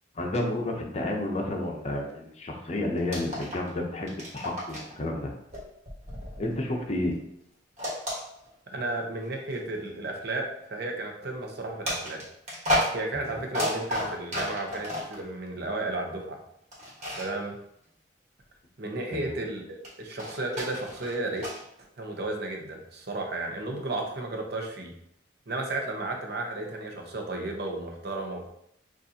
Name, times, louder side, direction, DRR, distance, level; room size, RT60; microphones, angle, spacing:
voice 1, 0.2-5.3 6.4-7.2 19.1-19.3, left 1 dB, 35° left, 1 dB, 0.7 m, -31 dB
sound 1, 3.1-3.8 4.0-5.0 5.5-7.0 7.8-8.8 9.5-9.6 11.8-15.2 16.7-17.3 19.8-21.6, equal, 35° right, 1.5 m, -32 dB
voice 2, 8.7-12.3 12.9-16.4 17.1-17.6 18.8-21.4 22.0-24.9 25.5-28.5, right 2 dB, 55° right, 2 dB, 0.8 m, -33 dB
6.6 x 2.5 x 2.8 m, 0.75 s
head